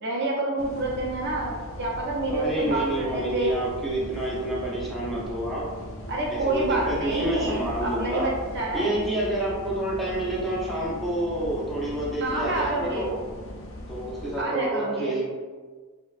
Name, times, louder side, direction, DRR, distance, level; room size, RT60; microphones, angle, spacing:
voice 1, 0.0-3.5 6.1-8.9 12.2-13.1 14.4-15.1, right 2 dB, 50° right, -3 dB, 0.6 m, -28 dB
sound 1, 0.6-14.4, left 1 dB, 65° left, 0.4 m, -39 dB
voice 2, 2.3-5.6 6.3-8.3 8.7-13.2 13.9-15.3, right 1 dB, ahead, -7 dB, 0.6 m, -28 dB
2.7 x 2.1 x 2.4 m, 1.5 s
head